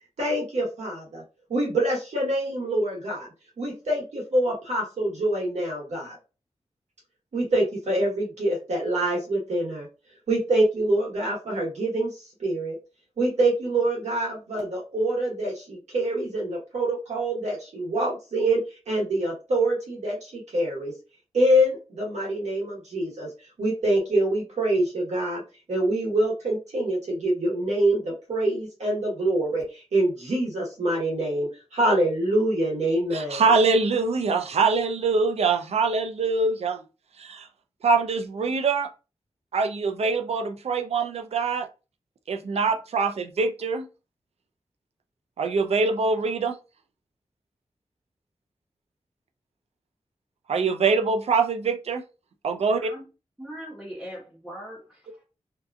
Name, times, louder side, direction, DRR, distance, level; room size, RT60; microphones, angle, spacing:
voice 1, 0.2-1.2 1.5-3.3 3.6-6.2 7.3-9.9 10.3-12.8 13.2-20.9 21.3-23.3 23.6-25.4 25.7-33.4, right 1 dB, 90° right, 0.9 m, -25 dB
voice 2, 33.1-36.8 37.2-37.5 37.8-38.9 39.5-41.7 42.3-43.9 45.4-46.6 50.5-52.0 52.4-52.9, right 4 dB, 70° right, 0.4 m, -24 dB
voice 3, 53.4-55.2, equal, 5° right, 0.7 m, -40 dB
2.7 x 2.3 x 2.3 m
wide cardioid pair, 125°, 11 cm